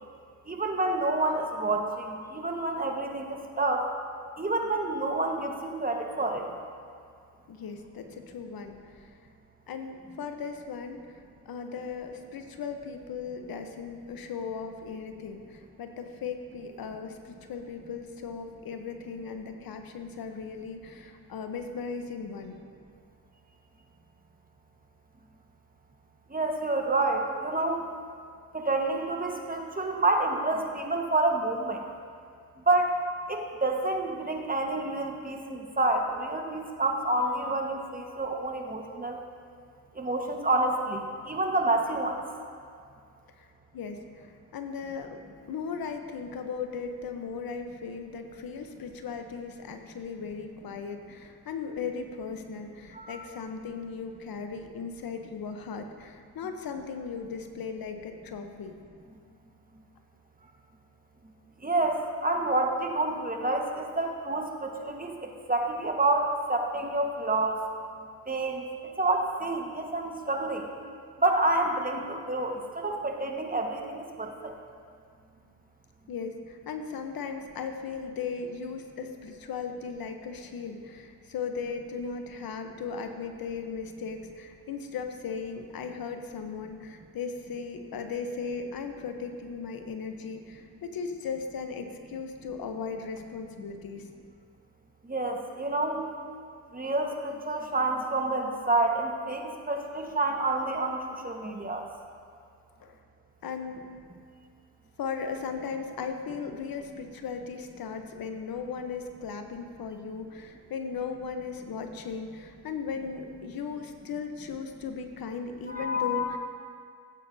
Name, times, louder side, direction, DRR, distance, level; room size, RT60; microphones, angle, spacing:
voice 1, 0.5-3.9 4.4-6.5 26.3-27.8 28.5-31.8 32.7-32.9 33.3-39.2 39.9-42.2 52.9-53.2 61.6-67.6 68.3-70.7 71.2-74.5 95.1-96.0 96.7-101.8 115.7-116.4, right 2 dB, 20° right, 2 dB, 1.5 m, -28 dB
voice 2, 7.5-9.1 9.7-11.1 11.4-22.6 43.7-44.3 44.5-45.2 45.5-58.8 76.1-94.0 102.8-103.0 103.4-103.9 105.0-116.4, left 5 dB, 65° left, 6 dB, 1.0 m, -37 dB
16.5 x 8.7 x 2.8 m, 2.2 s
supercardioid pair, 55°, 39 cm